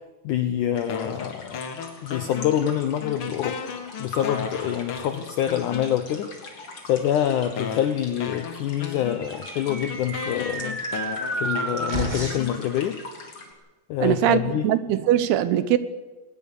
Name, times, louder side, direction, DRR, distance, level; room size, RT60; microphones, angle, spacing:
voice 1, 0.2-1.6 2.0-3.6 4.0-6.5 6.8-10.8 11.3-13.0 13.9-14.7, left 10 dB, 90° left, 1.8 m, -26 dB
sound 1, 0.7-13.5, left 3 dB, 40° left, 3.8 m, -42 dB
sound 2, 0.9-2.7 3.0-6.2 7.0-7.1 7.6-13.0, left 6 dB, 65° left, 1.3 m, -35 dB
sound 3, 9.0-12.6, right 2 dB, 35° right, 0.7 m, -31 dB
voice 2, 14.0-15.8, right 11 dB, 75° right, 2.9 m, -21 dB
21.5 x 19.5 x 6.8 m
omnidirectional pair, 4.7 m